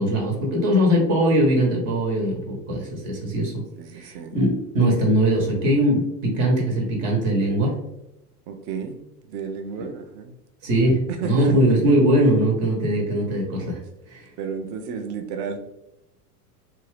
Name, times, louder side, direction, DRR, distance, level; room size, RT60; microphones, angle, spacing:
voice 1, 0.0-3.6 3.9-7.8 10.6-13.8 14.1-14.3, equal, 55° right, -1 dB, 1.1 m, -21 dB
voice 2, 3.8-4.4 8.5-9.0 9.3-10.3 11.1-11.6 14.4-15.6, right 6 dB, 35° right, 6 dB, 0.4 m, -32 dB
2.7 x 2.4 x 3.2 m, 0.87 s
hypercardioid pair, 95°, 48 cm